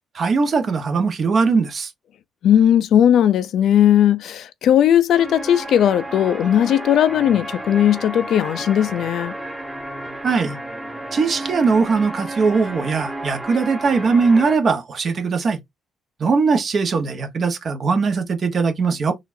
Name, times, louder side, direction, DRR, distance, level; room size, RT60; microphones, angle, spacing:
voice 1, 0.1-1.9 10.2-10.6 11.1-15.6 16.2-19.2, right 4 dB, 50° right, 1.0 m, -20 dB
voice 2, 2.4-9.3, left 10 dB, 70° left, 0.4 m, -17 dB
sound 1, 5.1-14.6, right 1 dB, 5° right, 0.9 m, -32 dB
3.8 x 2.4 x 2.6 m
cardioid pair, 90°, 0 cm